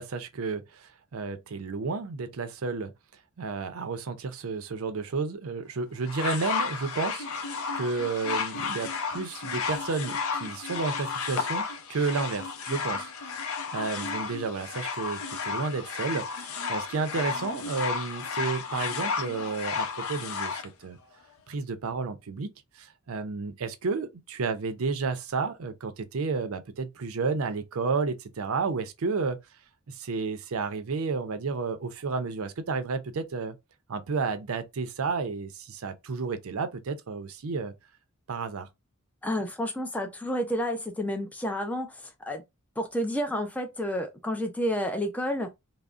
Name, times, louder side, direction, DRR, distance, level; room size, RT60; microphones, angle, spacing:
voice 1, 0.0-2.9 3.4-13.4 13.7-21.0 21.5-29.4 29.9-33.6 33.9-37.7 38.3-38.7, right 4 dB, 75° right, 0.5 m, -32 dB
sound 1, 6.1-20.7 21.5-21.6, left 5 dB, 75° left, 0.6 m, -33 dB
voice 2, 39.2-42.4 42.8-45.5, equal, 5° left, 0.4 m, -30 dB
3.5 x 2.0 x 2.4 m
head